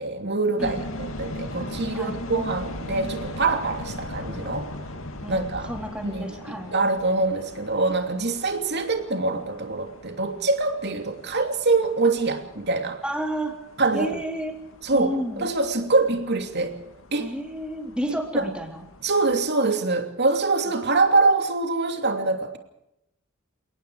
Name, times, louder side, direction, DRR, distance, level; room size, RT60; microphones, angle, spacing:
voice 1, 0.0-4.7 5.3-5.7 6.0-13.0 13.8-14.2 14.8-16.8 17.1-17.3 18.3-18.5 19.0-22.6, right 3 dB, 50° right, 2.9 m, -24 dB
sound 1, 0.6-19.4, left 1 dB, 70° left, 2.5 m, -39 dB
voice 2, 5.2-6.7 13.0-13.6 13.9-14.6 14.9-15.5 17.2-18.8, equal, 5° right, 3.7 m, -31 dB
29.5 x 18.5 x 4.9 m
head